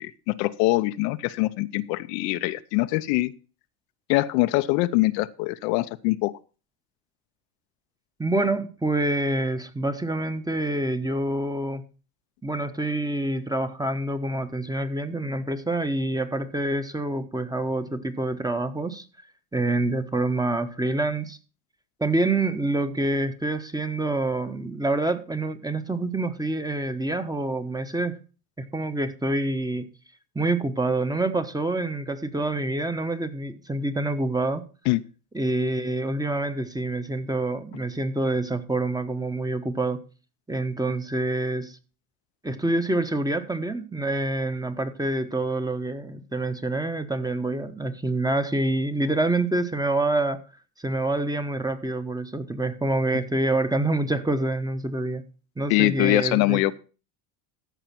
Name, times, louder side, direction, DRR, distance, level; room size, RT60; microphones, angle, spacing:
voice 1, 0.0-3.3 4.1-6.3 34.9-35.0 55.7-56.7, left 19 dB, 80° left, 0.8 m, -23 dB
voice 2, 8.2-11.8 12.4-19.0 19.5-21.4 22.0-28.2 28.6-29.9 30.3-34.6 35.3-40.0 40.5-41.8 42.4-50.4 50.8-55.2 55.6-56.6, right 2 dB, 10° right, 1.0 m, -26 dB
14.0 x 5.0 x 5.9 m
supercardioid pair, 95°, 50 cm